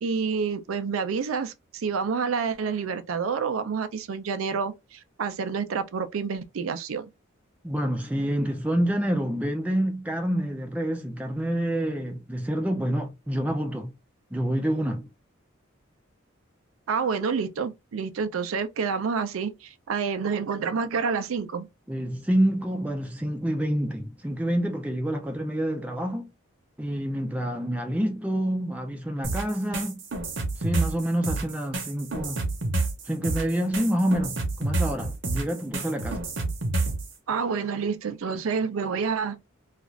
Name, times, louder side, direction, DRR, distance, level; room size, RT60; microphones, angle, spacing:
voice 1, 0.0-7.1 16.9-21.7 37.3-39.4, right 5 dB, 90° right, 0.4 m, -28 dB
voice 2, 7.6-13.9 14.3-15.1 21.9-26.3 26.8-30.0 30.6-32.4 33.0-36.2, right 1 dB, 5° right, 0.4 m, -27 dB
sound 1, 29.2-37.1, right 2 dB, 60° right, 0.8 m, -29 dB
2.4 x 2.4 x 3.1 m
head